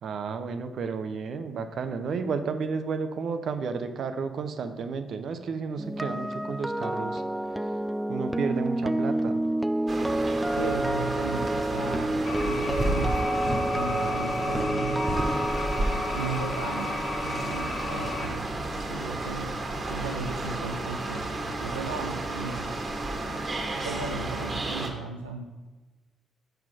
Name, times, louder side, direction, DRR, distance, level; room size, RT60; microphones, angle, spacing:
voice 1, 0.0-7.2 8.1-9.4, right 5 dB, 55° right, 9 dB, 0.7 m, -32 dB
sound 1, 5.8-19.8 20.1-20.4, right 1 dB, 10° right, 0.3 m, -30 dB
sound 2, 9.9-24.9, right 2 dB, 40° right, 1.4 m, -32 dB
voice 2, 10.5-13.3 13.7-15.2 16.1-18.5 18.8-19.6 19.9-22.7 23.8-25.4, right 4 dB, 90° right, 1 dB, 0.4 m, -36 dB
sound 3, 12.3-18.3, left 4 dB, 55° left, 1.0 m, -35 dB
5.8 x 5.7 x 6.1 m, 1.2 s
figure-of-eight pair, 40°, 0 cm